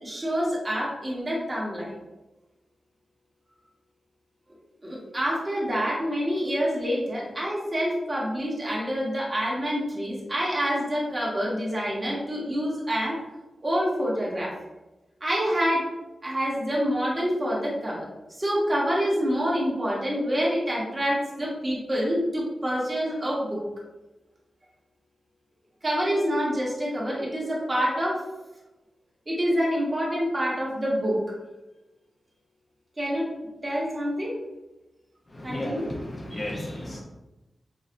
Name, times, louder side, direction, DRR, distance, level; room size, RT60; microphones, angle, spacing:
voice 1, 0.0-1.9 4.8-13.2 13.6-14.5 15.2-15.8 16.2-18.1 18.4-23.6 25.8-28.2 29.3-31.2 33.0-33.3 33.6-34.3 35.4-35.9, equal, 25° right, -5 dB, 1.3 m, -27 dB
voice 2, 35.3-37.0, left 1 dB, 35° left, -1 dB, 0.6 m, -34 dB
6.2 x 2.4 x 2.5 m, 1.0 s
wide cardioid pair, 110°, 0 cm